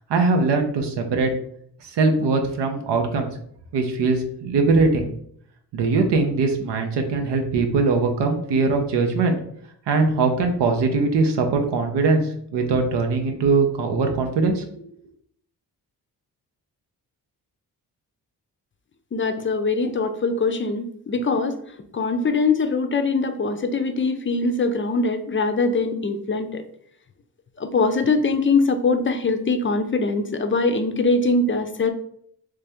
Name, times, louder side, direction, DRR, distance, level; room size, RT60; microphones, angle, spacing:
voice 1, 0.1-1.3 1.9-3.3 3.7-5.1 5.7-9.4 9.9-14.7, right 3 dB, 90° right, 4 dB, 0.8 m, -21 dB
voice 2, 19.1-21.6 21.9-26.6 27.6-31.9, left 3 dB, 30° left, 8 dB, 0.4 m, -22 dB
3.3 x 2.7 x 3.4 m, 0.66 s
cardioid pair, 70°, 41 cm